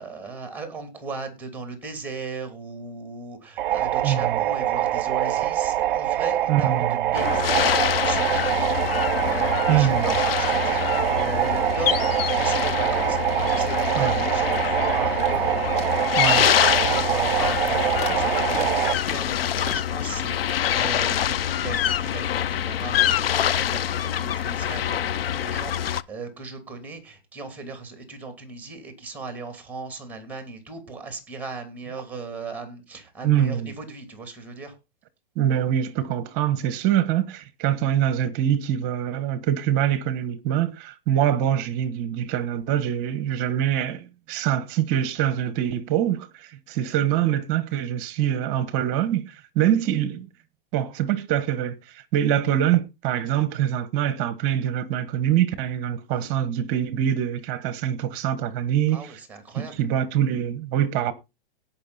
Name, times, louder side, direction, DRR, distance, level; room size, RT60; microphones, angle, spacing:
voice 1, 0.0-6.7 7.1-8.7 9.0-15.7 16.1-34.7 56.1-56.3 58.9-59.9, right 4 dB, 5° right, 2.8 m, -37 dB
sound 1, 3.6-18.9, right 13 dB, 60° right, 0.7 m, -24 dB
voice 2, 4.0-4.4 6.5-7.0 9.7-10.0 14.0-14.2 16.1-16.5 33.2-33.7 35.4-50.3 50.7-59.1 59.5-61.1, right 10 dB, 30° right, 1.3 m, -24 dB
sound 2, 7.1-26.0, left 10 dB, 80° left, 0.7 m, -25 dB
sound 3, 13.0-14.2 14.5-14.9 15.2-15.5 15.8-20.0, left 3 dB, 25° left, 1.8 m, -40 dB
17.5 x 5.9 x 4.2 m
hypercardioid pair, 155°, 29 cm